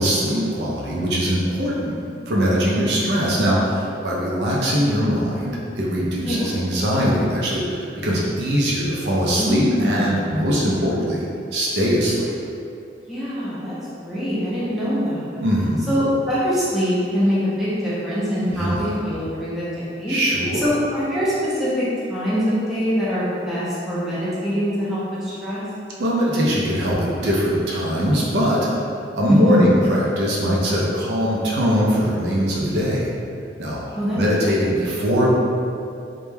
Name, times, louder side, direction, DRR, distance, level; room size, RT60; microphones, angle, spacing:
voice 1, 0.0-2.0 2.3-11.3 11.5-12.4 15.4-15.9 18.5-18.9 20.1-20.7 26.0-28.7 29.1-33.1 33.6-35.3, equal, 65° right, -5 dB, 0.4 m, -21 dB
voice 2, 6.2-6.5 9.4-10.0 13.1-13.8 14.0-15.2 15.9-19.7 19.9-20.2 20.6-25.6 29.3-29.8 33.9-34.2, equal, ahead, -11 dB, 0.5 m, -23 dB
2.1 x 2.1 x 3.1 m, 2.5 s
head